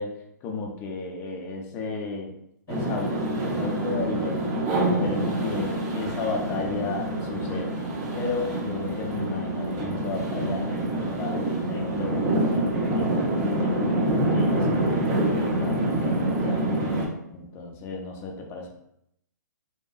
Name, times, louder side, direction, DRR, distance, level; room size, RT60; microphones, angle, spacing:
voice 1, 0.0-2.3 2.7-4.5 4.8-7.8 8.1-16.7 17.3-18.7, left 4 dB, 25° left, 1 dB, 0.4 m, -34 dB
sound 1, 2.7-17.1, right 1 dB, 30° right, 0.5 m, -26 dB
2.7 x 2.3 x 2.3 m, 0.77 s
figure-of-eight pair, 125°, 10 cm